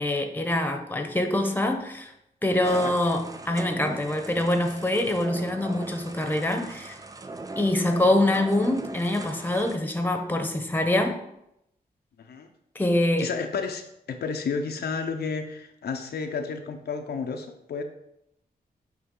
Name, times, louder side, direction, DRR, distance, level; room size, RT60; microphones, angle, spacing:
voice 1, 0.0-2.1 2.4-7.0 7.6-11.2 12.7-13.3, left 1 dB, 10° left, 5 dB, 0.9 m, -25 dB
sound 1, 2.6-9.8, right 3 dB, 20° right, 0.4 m, -39 dB
voice 2, 13.2-17.8, left 5 dB, 85° left, 5 dB, 0.7 m, -31 dB
8.3 x 3.4 x 3.8 m, 0.79 s
wide cardioid pair, 100°, 16 cm